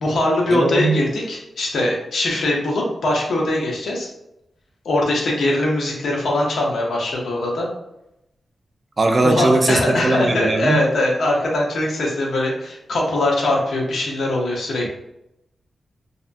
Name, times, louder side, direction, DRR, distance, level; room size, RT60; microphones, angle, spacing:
voice 1, 0.0-4.1 4.8-7.7 9.2-14.9, left 1 dB, 80° left, -1 dB, 0.7 m, -21 dB
voice 2, 0.5-1.0 9.0-10.8, right 2 dB, 45° right, 4 dB, 0.4 m, -19 dB
2.8 x 2.3 x 2.5 m, 0.85 s
cardioid pair, 65°, 0 cm